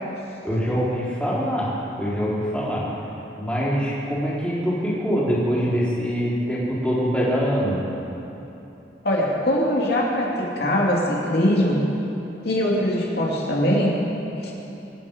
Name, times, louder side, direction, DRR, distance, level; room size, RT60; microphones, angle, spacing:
voice 1, 0.4-2.9 3.4-7.8, equal, 5° left, -8 dB, 3.8 m, -24 dB
voice 2, 9.0-11.8 12.4-14.0 14.4-14.5, equal, 60° left, -3 dB, 2.7 m, -22 dB
25.5 x 10.0 x 5.4 m, 2.9 s
head